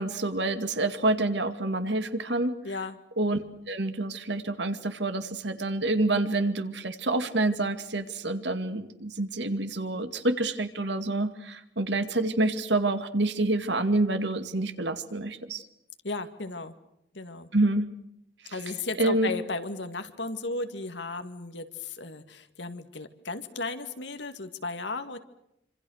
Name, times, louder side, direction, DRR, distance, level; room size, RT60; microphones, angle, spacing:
voice 1, 0.0-2.5 3.2-3.4 3.7-15.6 17.5-17.8 18.4-18.5 19.0-19.3, right 2 dB, 75° right, 9 dB, 2.3 m, -27 dB
voice 2, 2.6-3.0 16.0-16.7 17.1-17.5 18.5-25.2, left 3 dB, 80° left, 8 dB, 2.2 m, -35 dB
27.0 x 26.5 x 6.5 m, 0.78 s
head